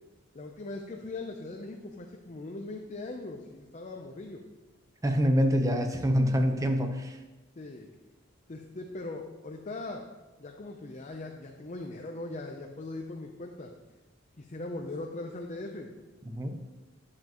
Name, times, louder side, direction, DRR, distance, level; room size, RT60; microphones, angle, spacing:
voice 1, 0.3-4.5 7.6-7.9 8.5-10.1 10.4-13.7 14.4-15.9, left 2 dB, 40° left, 2 dB, 0.6 m, -40 dB
voice 2, 5.0-7.2 16.3-16.6, equal, 15° right, 4 dB, 0.8 m, -26 dB
10.0 x 7.5 x 3.0 m, 1.1 s
head